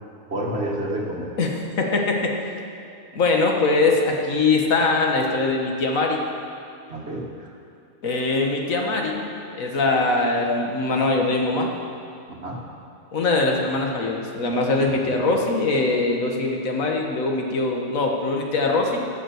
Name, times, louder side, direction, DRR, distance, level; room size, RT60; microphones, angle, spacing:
voice 1, 0.3-1.3 6.9-7.5 10.9-11.1 12.3-12.6, right 1 dB, 50° right, -1 dB, 1.9 m, -29 dB
voice 2, 1.4-2.3 3.1-6.2 8.0-9.2 9.6-11.7 13.1-19.1, left 3 dB, 80° left, 1 dB, 1.8 m, -22 dB
15.5 x 6.1 x 7.7 m, 2.5 s
omnidirectional pair, 1.4 m